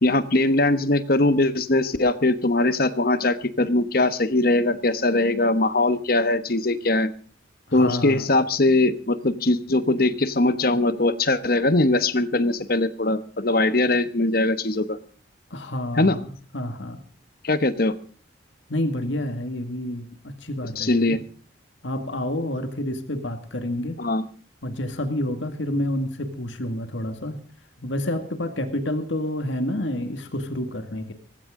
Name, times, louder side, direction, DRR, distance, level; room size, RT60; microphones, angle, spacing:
voice 1, 0.0-7.1 7.7-15.0 15.9-16.2 17.4-17.9 20.8-21.2 24.0-24.2, left 2 dB, 50° left, 13 dB, 1.1 m, -21 dB
voice 2, 7.7-8.2 15.5-17.0 18.7-21.2 21.8-24.0 24.6-27.4 27.8-31.1, left 1 dB, 70° left, 7 dB, 2.0 m, -29 dB
18.5 x 15.5 x 3.8 m, 0.40 s
head